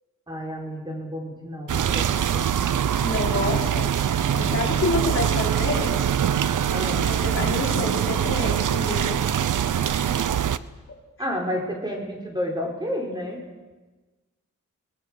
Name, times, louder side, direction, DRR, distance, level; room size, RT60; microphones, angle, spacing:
voice 1, 0.3-2.5 4.4-4.8 6.7-7.1 11.2-13.4, equal, 15° right, 0 dB, 5.0 m, -31 dB
sound 1, 1.7-10.6, right 9 dB, 80° right, 0.8 m, -23 dB
voice 2, 3.0-5.9 7.0-9.2 9.6-10.0, left 3 dB, 45° left, -2 dB, 4.9 m, -29 dB
29.0 x 20.5 x 6.7 m, 1.2 s
wide cardioid pair, 115°, 31 cm